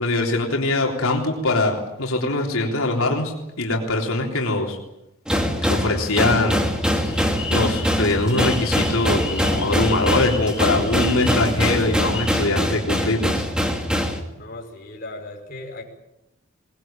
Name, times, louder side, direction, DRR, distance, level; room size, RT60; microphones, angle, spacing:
voice 1, 0.0-4.8 5.7-6.6 6.9-7.2 7.5-13.5, left 2 dB, 85° left, 0 dB, 3.6 m, -22 dB
sound 1, 5.3-14.2, equal, 5° right, 2.6 m, -23 dB
sound 2, 7.0-12.3, left 4 dB, 25° left, 5.9 m, -35 dB
voice 2, 14.3-15.9, left 2 dB, 40° left, 0 dB, 5.4 m, -37 dB
23.0 x 20.0 x 9.0 m, 0.89 s
head